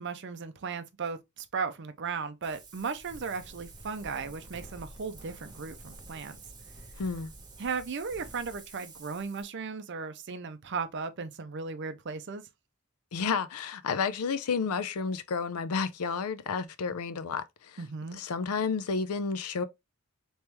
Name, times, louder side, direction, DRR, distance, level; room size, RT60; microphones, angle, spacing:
voice 1, 0.0-6.4 7.6-12.4 17.8-18.2, right 5 dB, 55° right, 0.5 m, -36 dB
Wind, 2.4-9.4, right 2 dB, 20° right, 0.8 m, -49 dB
voice 2, 7.0-7.3 13.1-17.8 18.1-19.6, left 5 dB, 90° left, 0.5 m, -31 dB
3.4 x 3.1 x 2.9 m
head